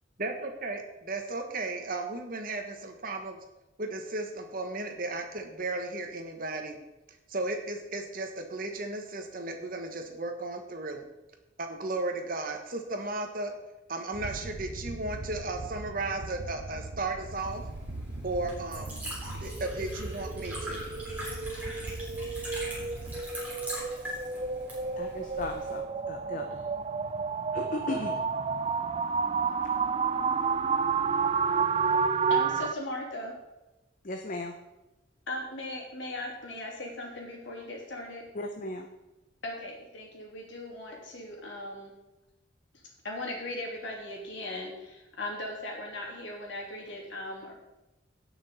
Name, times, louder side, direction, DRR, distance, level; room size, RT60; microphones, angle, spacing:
voice 1, 0.2-3.4 3.8-6.8 7.3-11.0 11.6-13.5 13.9-17.6 18.2-19.0 19.3-20.9, right 2 dB, 45° right, 5 dB, 1.3 m, -35 dB
sound 1, 14.1-23.2, right 2 dB, 70° right, 0.9 m, -41 dB
Liquid, 17.2-25.8, equal, 10° right, 3.5 m, -42 dB
sound 2, 19.5-32.7, right 5 dB, 30° right, 0.3 m, -30 dB
voice 2, 25.0-26.6 27.5-28.2 34.0-34.5 38.3-38.9, left 2 dB, 45° left, 4 dB, 0.7 m, -36 dB
voice 3, 32.3-33.3 35.3-38.2 39.4-41.9 43.0-47.5, left 1 dB, 75° left, -1 dB, 2.9 m, -38 dB
17.0 x 6.1 x 4.2 m, 1.0 s
head